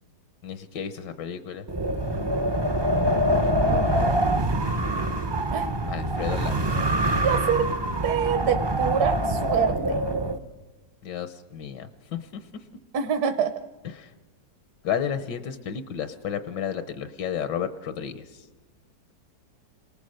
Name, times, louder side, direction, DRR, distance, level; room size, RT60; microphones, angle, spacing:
voice 1, 0.4-1.6 5.9-6.8 11.0-12.4 13.8-14.1 14.8-18.5, left 8 dB, 80° left, 11 dB, 1.5 m, -32 dB
Wind, 1.7-10.4, right 1 dB, 45° right, 0.3 m, -25 dB
voice 2, 3.6-4.3 5.5-5.7 6.7-7.7 8.0-10.1 12.9-13.6, right 7 dB, 65° right, 10 dB, 1.3 m, -26 dB
27.0 x 19.0 x 6.4 m, 1.2 s
omnidirectional pair, 1.9 m